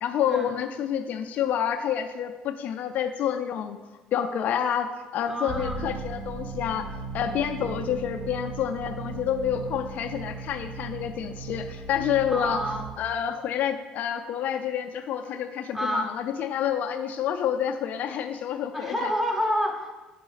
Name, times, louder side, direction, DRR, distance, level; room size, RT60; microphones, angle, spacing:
voice 1, 0.0-3.8 4.1-6.9 7.1-12.6 13.0-19.1, left 9 dB, 60° left, 7 dB, 0.4 m, -28 dB
voice 2, 5.3-5.8 12.3-12.9 15.7-16.1 18.7-20.0, equal, 10° right, 2 dB, 1.0 m, -29 dB
sound 1, 5.5-12.9, right 4 dB, 45° right, 1.6 m, -37 dB
4.9 x 4.8 x 3.9 m, 1.2 s
supercardioid pair, 85°, 3 cm